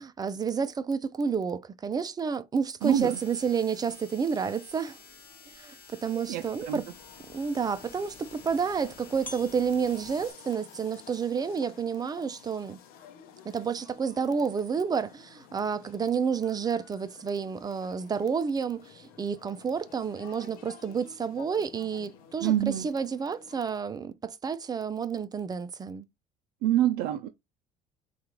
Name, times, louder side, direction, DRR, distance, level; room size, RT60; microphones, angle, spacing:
voice 1, 0.0-5.0 5.5-6.8 7.3-12.8 13.4-26.1, right 6 dB, 25° right, 0.5 m, -30 dB
sound 1, 2.8-10.3, left 4 dB, 35° left, 1.3 m, -52 dB
voice 2, 2.8-3.2 6.1-6.8 22.4-22.9 26.6-27.3, right 12 dB, 80° right, 0.4 m, -26 dB
sound 2, 6.8-23.6, left 8 dB, 75° left, 0.7 m, -53 dB
sound 3, 7.2-13.8, left 1 dB, 15° left, 0.9 m, -54 dB
3.5 x 2.4 x 3.0 m
cardioid pair, 100°, 15 cm